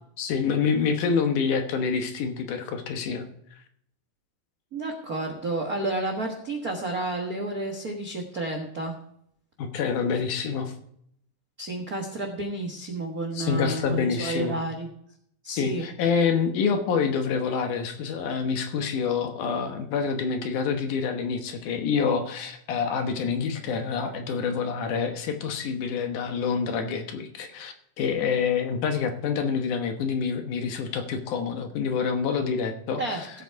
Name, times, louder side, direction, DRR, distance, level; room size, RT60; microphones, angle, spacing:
voice 1, 0.2-3.3 9.6-10.7 13.3-14.6 15.5-33.3, left 6 dB, 70° left, 6 dB, 2.4 m, -27 dB
voice 2, 4.7-8.9 11.6-14.9 15.4-15.9 33.0-33.3, right 2 dB, 85° right, 3 dB, 0.8 m, -31 dB
15.5 x 8.1 x 4.6 m, 0.69 s
omnidirectional pair, 4.0 m